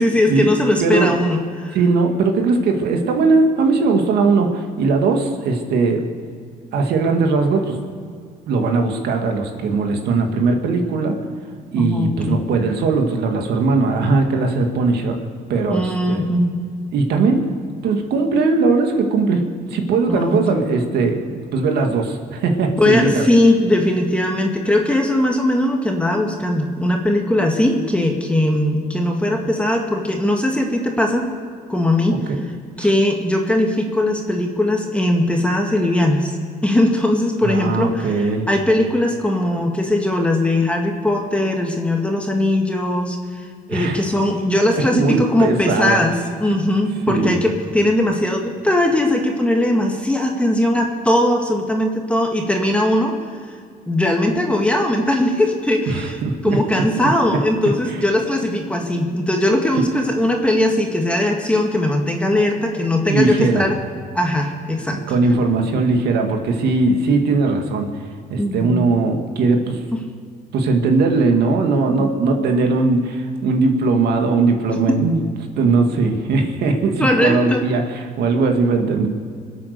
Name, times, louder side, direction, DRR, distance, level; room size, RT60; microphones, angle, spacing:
voice 1, 0.0-1.8 11.8-12.4 15.7-16.6 20.1-20.4 22.8-31.3 31.7-32.2 32.8-36.3 36.6-53.1 53.9-63.8 64.1-65.0 68.4-68.8 69.9-70.0 72.0-72.1 72.4-72.5 74.9-75.0 77.0-77.6, left 1 dB, 5° left, 1 dB, 1.9 m, -19 dB
voice 2, 0.8-1.1 1.7-6.0 6.7-7.8 8.5-11.1 11.7-15.2 15.5-16.3 16.9-17.4 17.8-19.4 19.7-23.2 32.3-32.4 32.8-32.9 37.4-38.5 43.7-44.0 44.9-46.0 47.1-47.4 55.9-56.8 57.9-58.0 59.8-59.9 63.1-63.7 64.9-67.9 68.3-69.8 70.5-79.1, right 3 dB, 75° right, 4 dB, 2.0 m, -19 dB
25.0 x 8.6 x 6.8 m, 2.2 s
cardioid pair, 110°, 17 cm